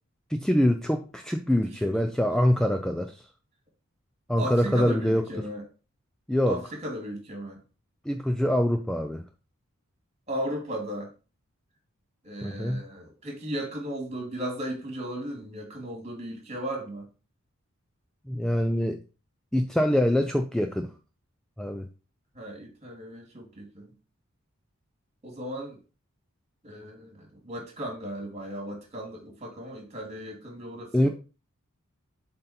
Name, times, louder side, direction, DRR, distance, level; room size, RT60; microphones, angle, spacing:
voice 1, 0.3-3.3 4.3-5.2 6.3-6.6 8.1-9.2 12.4-12.8 18.3-19.0 19.5-20.9 21.6-21.9 30.9-31.1, equal, 5° left, 0.3 m, -24 dB
voice 2, 1.5-2.1 4.4-5.6 6.5-7.6 10.3-11.1 12.2-17.1 22.3-23.9 25.2-25.8 26.6-31.1, right 1 dB, 30° right, 2.3 m, -36 dB
7.6 x 3.9 x 4.3 m
head